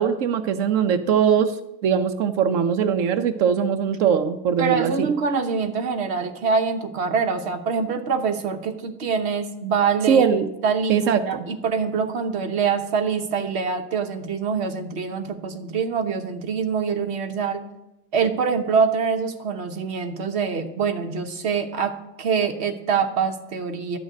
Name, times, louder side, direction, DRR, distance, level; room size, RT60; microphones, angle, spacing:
voice 1, 0.0-1.6 1.8-5.1 10.1-10.5 10.9-11.2, right 7 dB, 85° right, 8 dB, 1.1 m, -21 dB
voice 2, 4.6-10.2 10.6-11.0 11.3-17.6 18.1-24.0, right 5 dB, 60° right, 7 dB, 1.3 m, -24 dB
12.5 x 6.4 x 9.2 m, 0.92 s
omnidirectional pair, 1.3 m